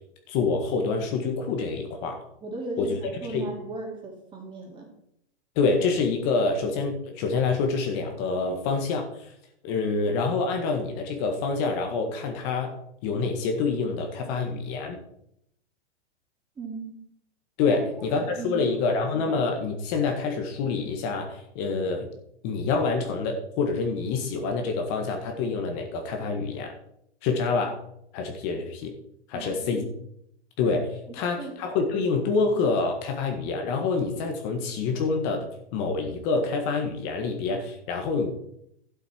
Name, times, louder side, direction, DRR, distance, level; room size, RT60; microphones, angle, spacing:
voice 1, 0.3-2.2 2.8-2.9 3.3-3.5 5.6-9.3 9.6-15.0 17.6-22.1 22.4-26.7 27.2-27.8 28.1-28.9 29.3-29.8 30.6-38.3, left 4 dB, 40° left, 3 dB, 1.8 m, -27 dB
voice 2, 2.4-4.9 16.5-16.9 17.7-17.8 18.1-19.0 19.2-19.3 29.3-29.9 31.1-31.6, right 3 dB, 15° right, -1 dB, 3.2 m, -37 dB
12.0 x 8.2 x 4.6 m, 0.75 s
hypercardioid pair, 140°, 33 cm